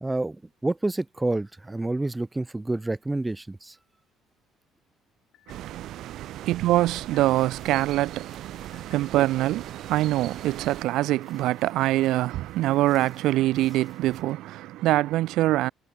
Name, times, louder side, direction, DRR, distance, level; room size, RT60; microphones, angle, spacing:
voice 1, 0.0-3.7, right 2 dB, 10° right, 1.2 m, -28 dB
sound 1, 5.3-5.9 6.4-7.6 8.0-9.3 9.7-11.1 11.5-12.0, left 14 dB, 65° left, 5.3 m, -60 dB
sound 2, 5.5-10.8, right 12 dB, 60° right, 1.6 m, -40 dB
voice 2, 5.5-15.7, right 16 dB, 75° right, 0.3 m, -24 dB
sound 3, 7.3-14.2, left 4 dB, 25° left, 4.4 m, -58 dB
cardioid pair, 140°, 0 cm